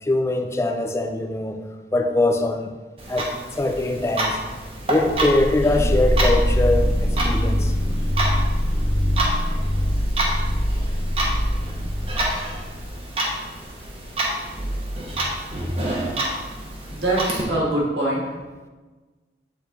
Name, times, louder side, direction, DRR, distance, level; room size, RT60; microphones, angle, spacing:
voice 1, 0.0-1.6 1.9-2.8 3.1-4.4 4.9-7.8, left 2 dB, 15° left, 5 dB, 0.4 m, -22 dB
Clock, 3.0-17.4, right 1 dB, 30° right, 1.1 m, -29 dB
sound 1, 5.1-12.9, equal, ahead, 1.0 m, -23 dB
voice 2, 16.9-18.2, right 1 dB, 75° right, -4 dB, 2.1 m, -23 dB
8.2 x 4.2 x 4.0 m, 1.3 s
head